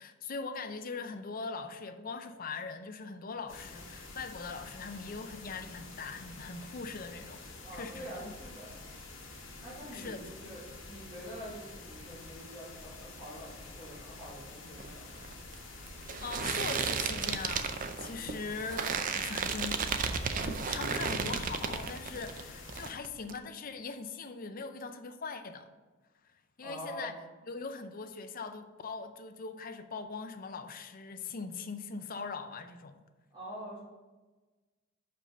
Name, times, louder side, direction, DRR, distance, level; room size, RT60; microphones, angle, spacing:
voice 1, 0.0-8.3 9.9-10.3 16.2-17.7 18.0-25.7 26.6-27.1 27.5-33.0, left 4 dB, 45° left, 8 dB, 0.6 m, -41 dB
sound 1, 3.5-22.9, left 3 dB, 75° left, 1.8 m, -48 dB
voice 2, 7.6-8.8 9.6-10.6 10.9-15.1 18.2-18.5 26.6-27.1 33.3-33.8, equal, 25° right, -12 dB, 2.4 m, -45 dB
sound 2, 14.7-22.4 22.7-23.4, right 5 dB, 40° right, 0.5 m, -34 dB
5.6 x 5.3 x 6.5 m, 1.2 s
head